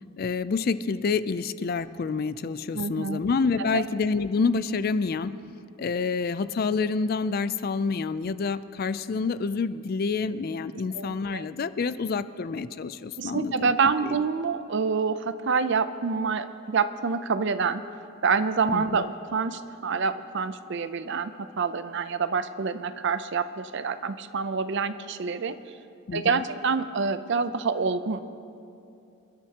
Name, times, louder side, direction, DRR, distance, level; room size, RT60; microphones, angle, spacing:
voice 1, 0.2-5.3 5.8-13.7 14.0-14.2 18.7-19.0 26.1-26.4, left 4 dB, 45° left, 14 dB, 0.4 m, -28 dB
voice 2, 2.7-3.2 3.6-3.8 10.9-11.4 13.2-17.8 18.2-25.6 26.1-28.2, right 5 dB, 55° right, 12 dB, 0.5 m, -27 dB
28.0 x 12.0 x 2.9 m, 2.7 s
head